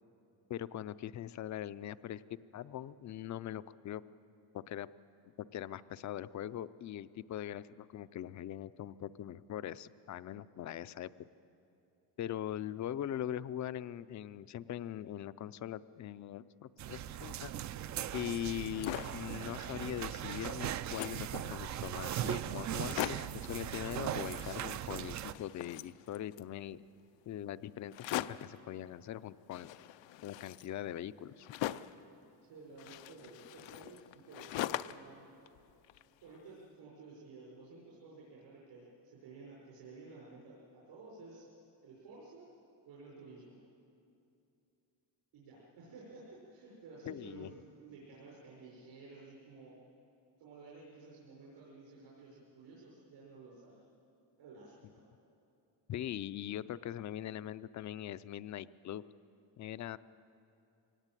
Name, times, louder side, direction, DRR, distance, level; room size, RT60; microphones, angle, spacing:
voice 1, 0.5-2.2 2.5-4.0 4.5-4.9 5.4-11.3 12.2-17.5 18.1-23.0 23.3-26.8 27.3-29.7 30.2-31.5 47.1-47.5 55.9-59.0 59.6-60.0, left 11 dB, 45° left, 16 dB, 0.5 m, -41 dB
sound 1, 16.8-25.3, right 11 dB, 45° right, 0.4 m, -39 dB
sound 2, 18.5-19.3 19.8-19.9 20.1-21.3 22.0-22.1 22.3-22.4 22.7-23.4 24.2-25.0 25.2-26.5 27.9-28.6 29.5-32.0 32.8-35.1 35.5-36.4, left 14 dB, 90° left, 0.7 m, -41 dB
voice 2, 32.4-35.3 36.2-41.5 41.8-42.5 42.8-43.6 45.3-49.7 50.4-53.8 54.4-55.0, right 3 dB, 75° right, -6 dB, 5.8 m, -53 dB
23.0 x 18.0 x 9.1 m, 2.7 s
cardioid pair, 175°, 43 cm